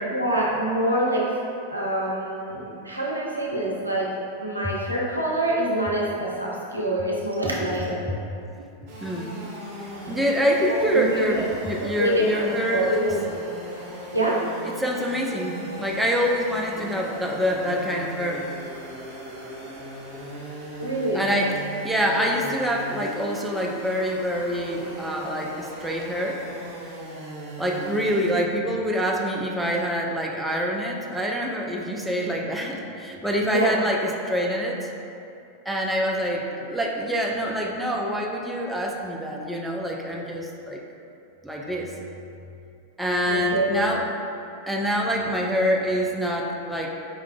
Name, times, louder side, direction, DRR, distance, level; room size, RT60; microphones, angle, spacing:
voice 1, 0.1-1.4 1.7-4.1 4.4-8.0 10.9-11.4 11.8-13.2 14.1-14.4 20.8-21.3 33.5-33.7 43.2-43.9, right 1 dB, 85° right, -4 dB, 0.5 m, -25 dB
sound 1, 8.9-28.3, right 1 dB, 45° right, 1.1 m, -38 dB
voice 2, 9.0-9.3 10.1-13.0 14.8-18.5 21.1-21.5 21.8-26.4 27.6-34.9 35.7-40.8 41.4-41.9 43.0-44.0 44.7-46.9, equal, 5° right, -2 dB, 0.3 m, -26 dB
4.7 x 2.3 x 2.2 m, 2.6 s
figure-of-eight pair, 90°, 0 cm